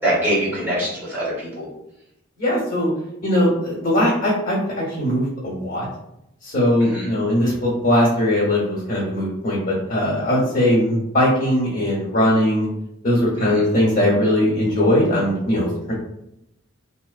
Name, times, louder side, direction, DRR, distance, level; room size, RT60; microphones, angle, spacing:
voice 1, 0.0-1.7 6.8-7.1 13.4-13.6, right 1 dB, 10° right, -10 dB, 1.3 m, -24 dB
voice 2, 2.4-2.9 3.2-5.9 6.4-12.7 13.0-15.9, left 1 dB, 45° left, -6 dB, 1.0 m, -20 dB
3.0 x 2.0 x 2.3 m, 0.84 s
head